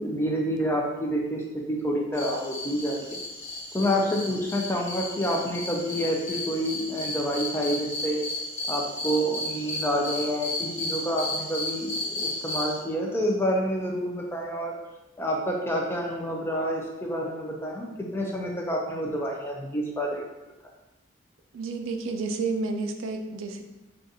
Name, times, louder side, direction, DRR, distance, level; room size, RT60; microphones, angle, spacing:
voice 1, 0.0-1.4 1.7-3.2 3.7-8.2 8.7-14.8 15.2-20.3, equal, 10° left, 0 dB, 0.4 m, -28 dB
sound 1, 2.1-12.8, left 2 dB, 35° left, 1.1 m, -34 dB
voice 2, 21.5-23.6, right 3 dB, 90° right, 5 dB, 0.4 m, -30 dB
3.9 x 2.4 x 2.6 m, 1.0 s
head